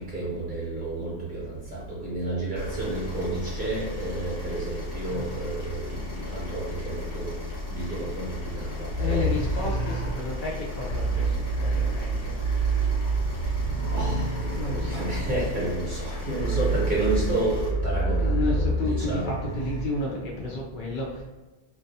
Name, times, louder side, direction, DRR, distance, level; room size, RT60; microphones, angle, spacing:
voice 1, 0.1-1.1 2.0-5.8 6.3-6.6 6.9-7.3 8.0-8.3 9.0-9.2 14.0-14.1 14.9-16.0 16.3-19.3, right 2 dB, 45° right, -7 dB, 0.8 m, -30 dB
sound 1, 2.5-17.7, left 2 dB, 30° left, 1.1 m, -36 dB
sound 2, 8.8-19.9, right 3 dB, 85° left, 0.9 m, -28 dB
voice 2, 9.0-12.4 13.6-13.7 13.9-14.0 14.6-15.1 18.1-21.2, left 2 dB, 60° left, -3 dB, 0.5 m, -32 dB
2.3 x 2.3 x 2.6 m, 1.2 s
omnidirectional pair, 1.3 m